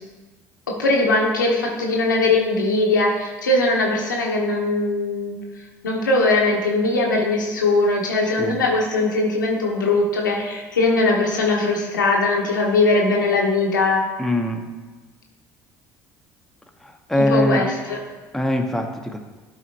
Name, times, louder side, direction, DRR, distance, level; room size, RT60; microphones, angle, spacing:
voice 1, 0.7-5.4 5.8-14.0 17.1-18.0, left 2 dB, 90° left, -1 dB, 1.0 m, -20 dB
voice 2, 14.2-14.7 17.1-17.6 18.3-19.2, left 1 dB, 5° left, 3 dB, 1.0 m, -21 dB
11.5 x 4.2 x 2.9 m, 1.3 s
hypercardioid pair, 60°, 10 cm